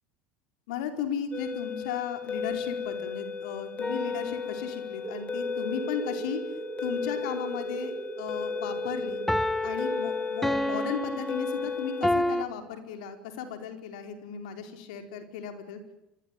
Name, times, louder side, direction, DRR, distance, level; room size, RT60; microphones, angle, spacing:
voice 1, 0.7-6.4 6.8-9.2 9.6-15.8, left 8 dB, 75° left, 6 dB, 4.5 m, -35 dB
sound 1, 1.3-12.1, left 5 dB, 30° left, 3.4 m, -35 dB
sound 2, 3.8-4.8 9.3-12.5, left 1 dB, 5° left, 1.4 m, -30 dB
sound 3, 5.0-10.0, right 6 dB, 30° right, 1.1 m, -39 dB
25.5 x 23.5 x 9.2 m, 0.90 s
hypercardioid pair, 85°, 4 cm